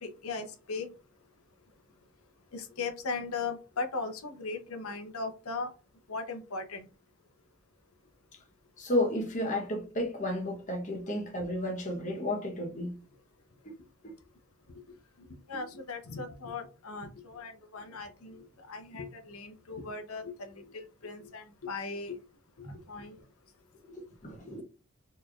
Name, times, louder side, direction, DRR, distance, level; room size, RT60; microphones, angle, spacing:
voice 1, 0.0-0.9 2.5-5.7 6.1-6.9 15.5-22.2 22.6-23.2, left 4 dB, 80° left, 0.8 m, -38 dB
voice 2, 8.8-13.0 13.6-13.7 14.0-14.1 22.6-22.8 23.8-24.6, left 1 dB, 35° left, 1.0 m, -32 dB
4.2 x 3.2 x 2.4 m
head